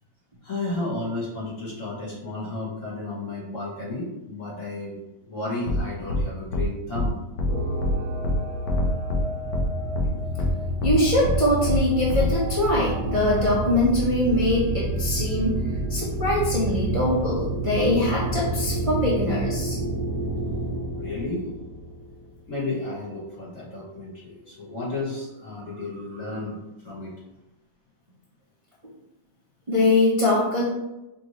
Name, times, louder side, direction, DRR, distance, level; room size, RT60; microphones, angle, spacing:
voice 1, 0.4-7.2 21.0-21.5 22.5-26.6 26.8-27.1, left 2 dB, 50° left, -6 dB, 1.5 m, -32 dB
sound 1, 5.7-5.8 6.1-6.2 6.5-6.7 6.9-7.1 7.4-7.5 7.8-7.9 8.2-8.4 8.7-9.2 9.5-9.6 9.9-10.1 10.4-10.5 10.8-10.9 11.2-11.4 11.7-11.8 12.1-12.3, left 2 dB, 65° left, 1.0 m, -24 dB
sound 2, 7.5-22.4 25.6-25.7 25.9-26.5, right 1 dB, 70° right, 1.1 m, -29 dB
voice 2, 10.8-15.6 15.9-19.8 29.7-30.6, left 1 dB, 30° right, -8 dB, 0.6 m, -22 dB
5.3 x 2.6 x 3.0 m, 0.97 s
omnidirectional pair, 1.9 m